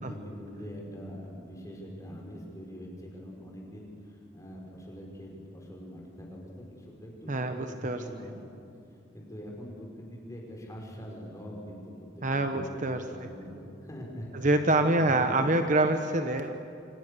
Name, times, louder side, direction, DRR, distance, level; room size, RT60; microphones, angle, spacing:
voice 1, 0.0-8.4 9.1-15.4, equal, 15° left, -1 dB, 5.7 m, -43 dB
voice 2, 7.3-8.0 12.2-13.0 14.3-16.5, right 2 dB, 40° right, 7 dB, 1.1 m, -26 dB
28.0 x 25.5 x 6.9 m, 2.5 s
head